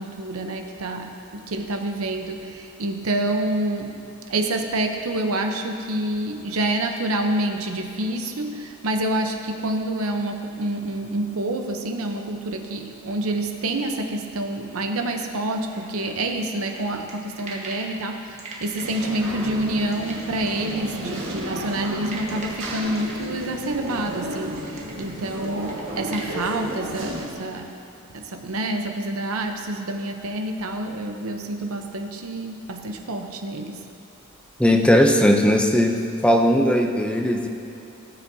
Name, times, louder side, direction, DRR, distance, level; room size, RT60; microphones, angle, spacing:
voice 1, 0.0-4.0 4.3-27.7 28.1-33.9, right 1 dB, 85° right, 5 dB, 0.8 m, -27 dB
sound 1, 15.7-17.9 18.4-26.3, right 3 dB, 35° right, 1.4 m, -41 dB
sound 2, 18.8-27.3, right 1 dB, 60° right, 1.7 m, -33 dB
voice 2, 34.6-36.0 36.2-37.5, equal, 5° left, 3 dB, 0.6 m, -18 dB
16.5 x 7.6 x 2.7 m, 2.7 s
head